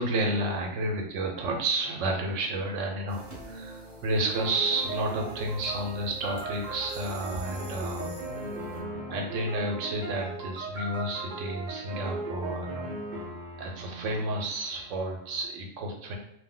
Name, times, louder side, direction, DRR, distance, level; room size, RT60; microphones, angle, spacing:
voice 1, 0.0-8.1 9.1-12.9 13.6-16.2, right 1 dB, 80° right, 1 dB, 1.0 m, -31 dB
sound 1, 3.1-8.8, right 1 dB, 25° right, 1.0 m, -44 dB
sound 2, 4.2-15.4, right 2 dB, 55° right, 0.5 m, -39 dB
2.5 x 2.1 x 3.6 m, 0.76 s
omnidirectional pair, 1.3 m